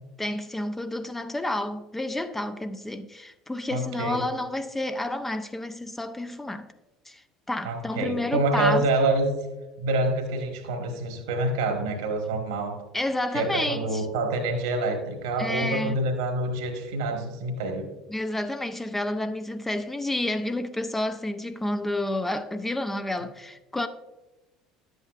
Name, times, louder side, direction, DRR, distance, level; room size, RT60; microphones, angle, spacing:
voice 1, 0.2-6.7 7.1-8.9 12.9-14.1 15.4-16.0 18.1-23.9, left 1 dB, 10° left, 0.5 m, -30 dB
voice 2, 3.7-4.2 7.6-9.3 9.8-12.8 13.3-17.9, right 2 dB, 70° right, 1.4 m, -27 dB
11.0 x 8.1 x 2.4 m
figure-of-eight pair, 65°, 2 cm